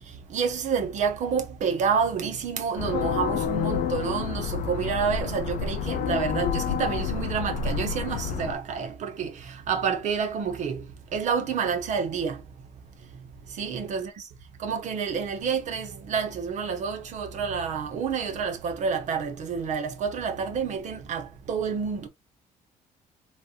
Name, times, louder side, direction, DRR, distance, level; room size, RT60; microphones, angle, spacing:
voice 1, 0.3-10.9 11.1-12.4 13.6-14.2 14.6-22.1, right 6 dB, 55° right, 0.9 m, -29 dB
sound 1, 2.8-8.5, left 7 dB, 65° left, 0.5 m, -29 dB
3.3 x 2.8 x 2.4 m
cardioid pair, 125°, 15 cm